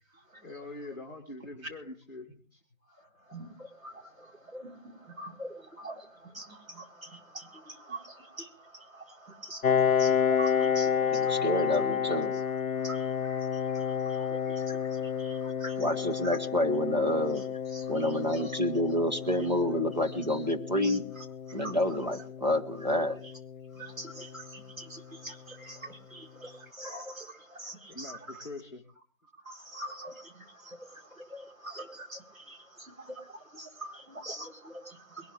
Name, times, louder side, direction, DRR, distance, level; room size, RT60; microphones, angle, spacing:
voice 1, 0.4-2.6 4.0-4.1 15.0-15.4 26.7-26.8 27.9-28.8, left 2 dB, 15° left, 0 dB, 1.8 m, -44 dB
voice 2, 3.0-11.5 12.8-15.9 16.2-16.4 17.7-18.6 20.3-20.4 20.8-21.7 23.7-28.5 29.4-35.3, right 1 dB, 75° right, 2 dB, 4.4 m, -45 dB
Piano, 9.6-25.0, left 7 dB, 85° left, 0.6 m, -31 dB
voice 3, 11.0-12.3 15.8-17.4 17.9-21.0 21.5-23.2, left 1 dB, 35° right, 4 dB, 1.2 m, -28 dB
22.5 x 13.0 x 3.4 m, 0.40 s
figure-of-eight pair, 175°, 41 cm